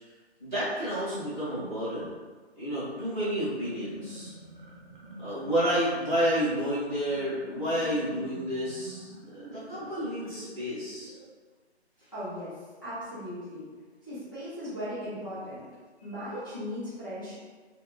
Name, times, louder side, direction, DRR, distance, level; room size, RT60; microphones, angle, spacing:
voice 1, 0.4-2.1 2.5-4.3 5.2-11.1, equal, ahead, -26 dB, 1.1 m, -30 dB
sound 1, 3.4-11.3, equal, 50° right, 0.6 m, -46 dB
voice 2, 12.1-13.6 14.0-15.6 16.0-17.4, equal, 20° left, -13 dB, 0.7 m, -37 dB
3.2 x 2.6 x 3.2 m, 1.4 s
hypercardioid pair, 180°, 34 cm